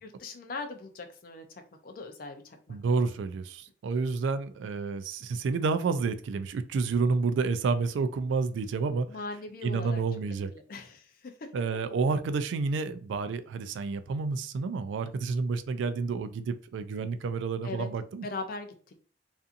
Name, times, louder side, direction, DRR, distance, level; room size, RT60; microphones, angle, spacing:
voice 1, 0.0-3.0 9.1-10.0 10.5-11.3 17.6-17.9 18.2-19.0, left 3 dB, 50° left, 0.4 m, -40 dB
voice 2, 2.7-9.1 9.6-10.5 11.5-18.2, right 4 dB, 90° right, 0.3 m, -29 dB
2.6 x 2.5 x 2.4 m
head